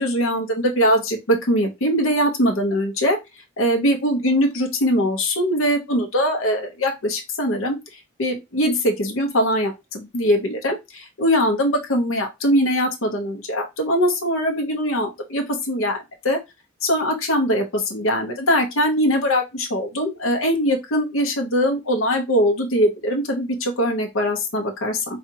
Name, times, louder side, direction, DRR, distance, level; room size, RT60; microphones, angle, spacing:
voice 1, 0.0-3.2 3.6-7.8 8.2-16.4 16.8-25.0, equal, 85° left, 3 dB, 0.8 m, -21 dB
4.9 x 2.4 x 2.8 m, 0.22 s
head